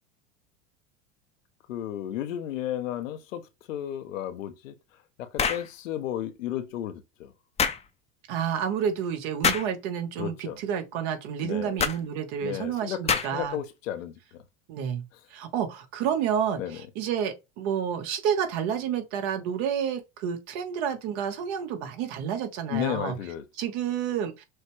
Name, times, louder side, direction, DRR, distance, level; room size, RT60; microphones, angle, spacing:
voice 1, 1.7-4.7 5.2-7.3 10.2-10.6 11.4-11.8 12.4-14.4 16.6-16.8 22.7-23.4, left 11 dB, 90° left, 0.8 m, -33 dB
sound 1, 5.4-5.7 7.6-7.8 9.4-9.7 11.8-12.0 13.1-13.5, left 6 dB, 15° left, 0.5 m, -25 dB
voice 2, 8.3-13.6 14.7-15.0 15.3-23.2 23.6-24.4, right 8 dB, 65° right, 1.3 m, -30 dB
6.3 x 2.3 x 3.1 m
supercardioid pair, 105°, 38 cm